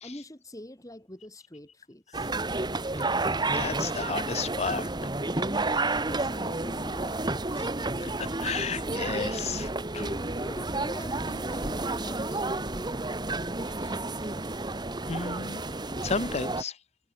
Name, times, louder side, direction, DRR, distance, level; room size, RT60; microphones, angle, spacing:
voice 1, 0.0-2.3 5.3-7.9 10.0-13.0, left 1 dB, 20° left, 2.7 m, -45 dB
sound 1, 2.1-16.6, right 2 dB, 25° right, 1.6 m, -31 dB
voice 2, 3.5-4.9 8.0-10.2 15.1-15.6 16.0-16.7, left 5 dB, 35° left, 0.8 m, -32 dB
head